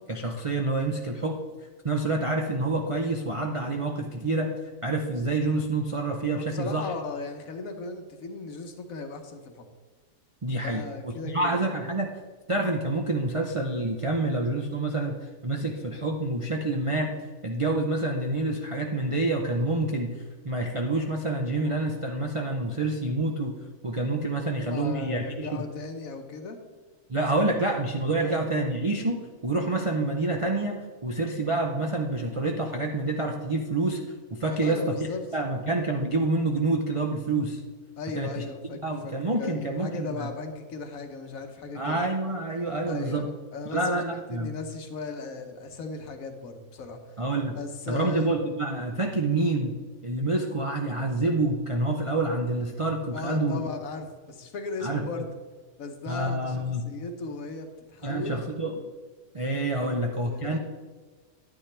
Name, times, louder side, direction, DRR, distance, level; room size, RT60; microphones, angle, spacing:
voice 1, 0.1-1.4 1.8-4.5 4.8-6.9 10.4-12.1 12.5-17.1 17.4-20.2 20.4-23.6 23.8-25.6 27.1-34.0 34.4-37.6 38.1-38.4 38.8-40.3 41.7-43.3 43.7-44.5 47.2-47.6 47.9-49.7 50.0-53.6 54.8-55.0 56.1-56.8 58.0-58.7 59.3-60.6, right 2 dB, 40° right, 1 dB, 0.4 m, -27 dB
voice 2, 6.3-9.7 10.6-11.7 24.6-26.6 28.2-28.4 34.5-35.3 38.0-38.8 39.0-42.0 42.9-43.8 44.1-47.2 47.6-48.3 53.1-55.3 55.8-58.4 60.2-60.6, left 4 dB, 65° left, 6 dB, 1.4 m, -37 dB
10.0 x 9.6 x 3.3 m, 1.4 s
omnidirectional pair, 1.6 m